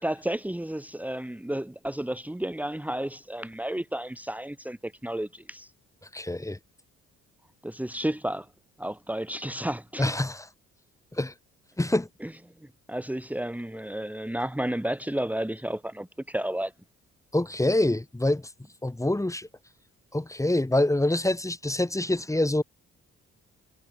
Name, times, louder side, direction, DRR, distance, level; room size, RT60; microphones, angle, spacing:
voice 1, 0.0-5.7 7.6-8.5 8.8-10.1 12.2-12.3 12.6-16.7, right 1 dB, 5° right, 3.2 m, -32 dB
voice 2, 6.1-6.6 10.0-10.5 11.1-11.3 11.8-12.1 17.3-18.5 18.8-19.5 20.1-22.6, left 1 dB, 10° left, 4.0 m, -25 dB
cardioid pair, 90°, 30 cm